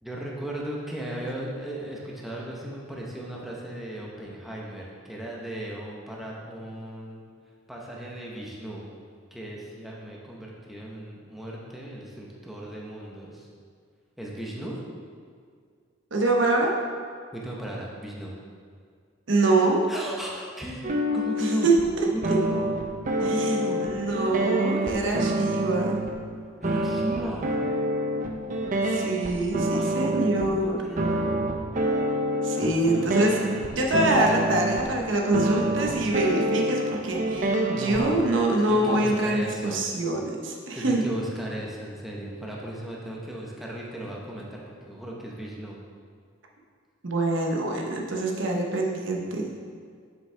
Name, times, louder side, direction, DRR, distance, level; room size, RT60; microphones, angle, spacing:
voice 1, 0.0-7.2 7.7-8.9 9.3-13.5 14.2-14.8 17.3-18.3 19.9-21.7 22.0-22.7 23.2-23.8 26.6-27.6 29.7-31.5 32.7-34.0 37.7-38.4 38.7-39.8 40.7-45.8, right 1 dB, ahead, -4 dB, 0.9 m, -36 dB
voice 2, 16.1-16.7 19.3-19.8 21.6-22.4 23.4-23.5 23.8-26.0 28.8-30.8 32.4-33.4 33.8-41.0 47.0-49.5, right 2 dB, 70° right, 0 dB, 1.0 m, -25 dB
sound 1, 20.8-21.9 22.2-26.1 26.6-30.5 31.0-34.9 35.3-38.0, right 1 dB, 40° right, 0.6 m, -27 dB
7.5 x 6.3 x 3.3 m, 2.1 s
head